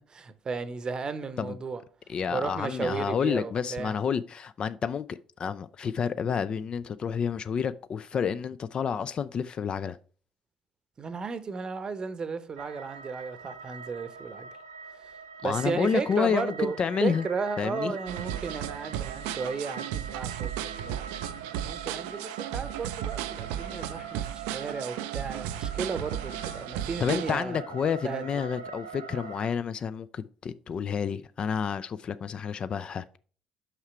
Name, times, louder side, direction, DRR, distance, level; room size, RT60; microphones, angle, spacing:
voice 1, 0.0-1.8 2.3-4.0 11.0-14.5 15.4-21.0 21.6-27.6 28.0-28.3, right 5 dB, 35° right, 0.8 m, -34 dB
voice 2, 2.1-10.0 15.4-17.3 17.6-18.0 27.0-33.2, left 7 dB, 40° left, 0.4 m, -29 dB
sound 1, 12.5-29.5, right 5 dB, 80° right, 0.7 m, -43 dB
sound 2, 18.1-27.4, right 11 dB, 65° right, 0.4 m, -35 dB
5.7 x 5.6 x 4.5 m
figure-of-eight pair, 50°, 3 cm